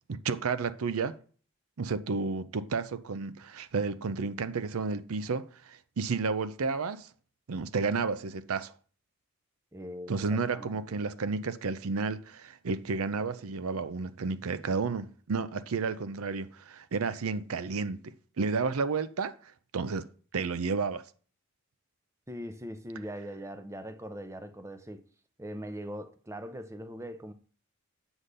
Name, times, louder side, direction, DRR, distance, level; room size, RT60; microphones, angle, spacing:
voice 1, 0.1-1.2 1.8-7.1 7.5-8.7 10.1-20.1 20.3-21.0, right 4 dB, 80° right, 0.6 m, -32 dB
voice 2, 9.7-11.0 22.3-25.1 25.4-27.3, equal, 15° right, 0.6 m, -41 dB
8.1 x 3.8 x 6.6 m
head